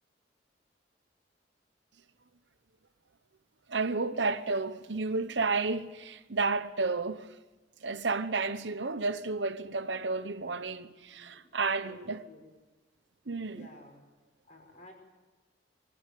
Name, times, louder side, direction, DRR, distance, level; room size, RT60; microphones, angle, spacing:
voice 1, 3.7-7.3 7.8-12.2 13.3-13.7, right 3 dB, 75° right, 1.1 m, -31 dB
voice 2, 11.0-11.4 11.8-12.5 13.5-14.0 14.4-14.9, left 1 dB, 40° left, 6.0 m, -53 dB
24.0 x 15.5 x 9.4 m
head